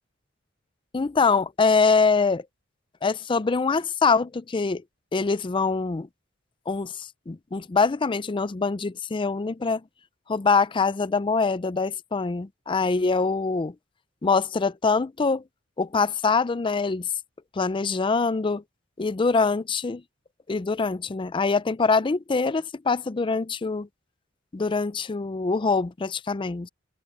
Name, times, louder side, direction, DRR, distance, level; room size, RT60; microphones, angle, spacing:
voice 1, 0.9-2.4 3.0-4.8 5.1-6.1 6.7-9.8 10.3-13.7 14.2-15.4 15.8-17.1 17.5-18.6 19.0-20.0 20.5-23.9 24.5-26.7, left 4 dB, 25° left, 0.4 m, -24 dB
head